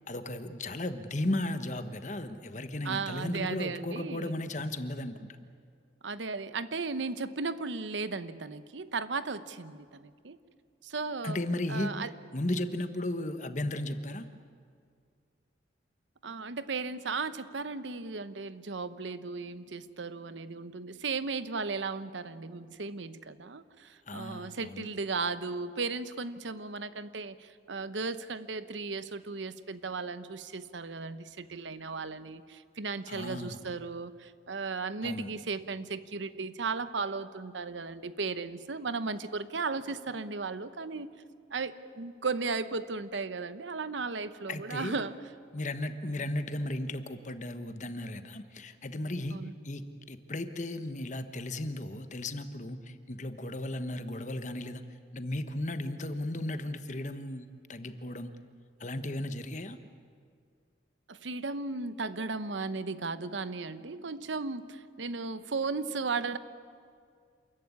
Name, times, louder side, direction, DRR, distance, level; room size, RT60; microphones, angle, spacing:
voice 1, 0.1-5.1 11.2-11.9 12.3-14.3 24.1-24.9 33.1-33.7 35.0-35.3 44.5-44.9 45.5-54.8 55.1-58.3 58.8-59.8, left 1 dB, 40° left, 9 dB, 1.2 m, -35 dB
voice 2, 2.8-4.4 6.0-10.4 10.8-11.4 11.7-12.1 16.2-41.1 41.5-45.1 49.3-49.5 61.1-66.4, right 4 dB, 85° right, 13 dB, 0.9 m, -36 dB
27.5 x 14.5 x 9.6 m, 2.2 s
head